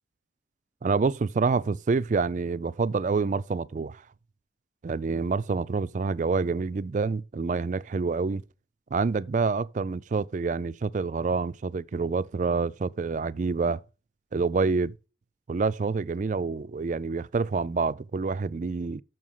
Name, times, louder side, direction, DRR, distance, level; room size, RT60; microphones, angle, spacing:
voice 1, 0.8-4.0 4.8-8.4 8.9-13.8 14.3-14.9 15.5-19.0, right 4 dB, 40° right, 0.4 m, -27 dB
6.3 x 6.2 x 7.2 m
head